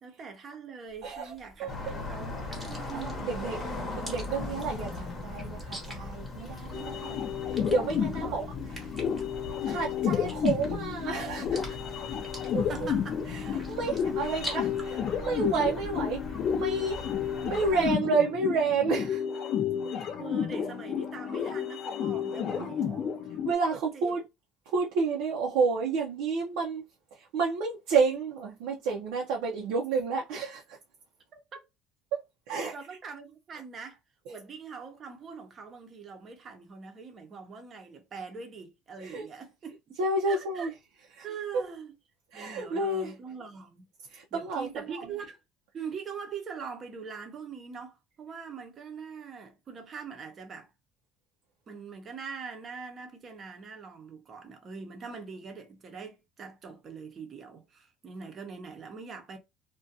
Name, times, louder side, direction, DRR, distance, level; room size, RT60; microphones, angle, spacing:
voice 1, 0.0-3.2 3.8-4.0 6.8-7.2 8.0-8.9 12.4-13.2 14.3-14.6 15.1-15.2 20.2-23.1 23.7-24.1 31.5-31.6 32.7-34.0 34.3-40.0 40.3-40.7 41.2-41.9 42.3-43.9 44.3-45.4 45.7-50.7 51.7-59.4, right 5 dB, 30° right, 0.6 m, -43 dB
sound 1, 0.9-14.8, right 1 dB, 10° right, 0.9 m, -47 dB
voice 2, 1.0-1.3 1.6-1.9 2.9-3.6 4.0-7.2 7.7-8.5 9.6-11.8 12.5-12.9 13.3-14.6 15.2-16.2 16.5-17.0 17.5-19.2 22.6-22.7 23.4-24.2 24.7-26.8 27.3-30.8 32.5-32.7 39.0-39.3 40.0-40.7 41.2-41.3 42.3-43.1 44.1-44.7 45.0-45.1, right 4 dB, 80° right, 0.5 m, -30 dB
sound 2, 1.7-18.0, left 2 dB, 25° left, 0.8 m, -40 dB
sound 3, 6.7-23.5, left 8 dB, 45° left, 0.4 m, -31 dB
2.4 x 2.2 x 2.6 m
cardioid pair, 140°, 0 cm